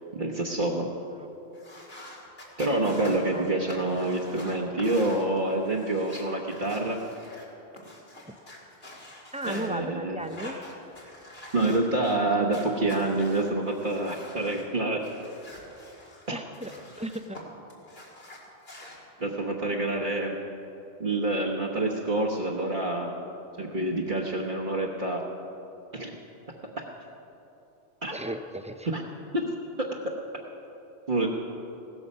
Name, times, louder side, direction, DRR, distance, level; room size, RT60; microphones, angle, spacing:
voice 1, 0.1-0.9 2.6-7.0 9.4-10.2 11.5-15.1 16.3-16.4 19.2-20.4 21.0-23.1 23.6-25.2 25.9-26.2 26.8-26.9 28.0-28.1 28.8-29.0 29.3-29.4 31.1-31.3, right 2 dB, 55° right, -2 dB, 1.2 m, -27 dB
sound 1, 1.5-7.4 7.7-9.7 10.2-12.2 12.5-14.6 15.0-17.4 17.7-19.0, left 1 dB, 70° left, 2.6 m, -46 dB
voice 2, 9.3-10.6 16.3-16.7 17.0-17.4 28.1-28.9, right 1 dB, 10° right, 8 dB, 0.4 m, -35 dB
16.5 x 13.5 x 5.4 m, 3.0 s
omnidirectional pair, 1.0 m